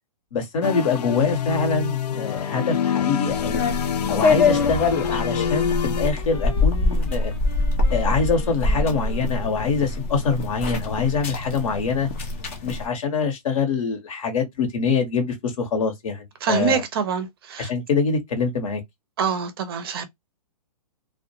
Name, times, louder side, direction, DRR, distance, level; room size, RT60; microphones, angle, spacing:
voice 1, 0.3-3.6 4.1-7.3 7.9-12.1 12.6-16.8 17.6-18.8, left 4 dB, 55° left, 1.0 m, -24 dB
sound 1, 0.6-6.1, left 8 dB, 80° left, 0.4 m, -26 dB
sound 2, 3.3-12.9, left 3 dB, 20° left, 0.3 m, -24 dB
Wind instrument woodwind instrument, 3.6-10.0, left 4 dB, 35° left, 0.8 m, -41 dB
voice 2, 16.4-17.7 19.2-20.1, right 7 dB, 40° right, 0.5 m, -25 dB
2.3 x 2.1 x 2.7 m
hypercardioid pair, 165°, 20 cm